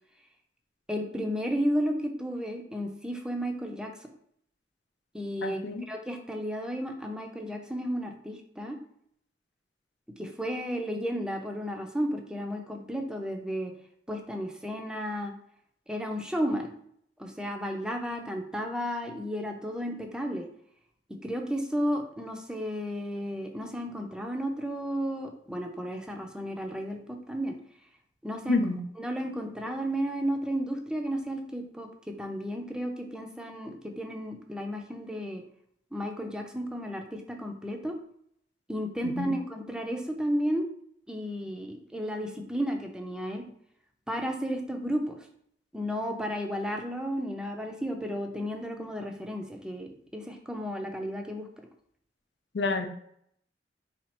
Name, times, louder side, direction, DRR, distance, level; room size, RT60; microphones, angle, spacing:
voice 1, 0.9-4.1 5.1-5.6 5.9-8.8 10.2-13.7 14.1-15.3 15.9-16.7 17.2-20.5 21.1-27.6 28.2-28.6 29.0-31.9 32.2-35.4 35.9-38.0 38.7-40.7 41.1-43.5 44.1-45.1 45.7-51.5, equal, 5° right, 3 dB, 0.5 m, -33 dB
voice 2, 5.4-5.9 28.5-28.8 39.0-39.4 52.5-52.9, left 3 dB, 75° left, 7 dB, 0.5 m, -29 dB
4.3 x 2.4 x 4.2 m, 0.67 s
head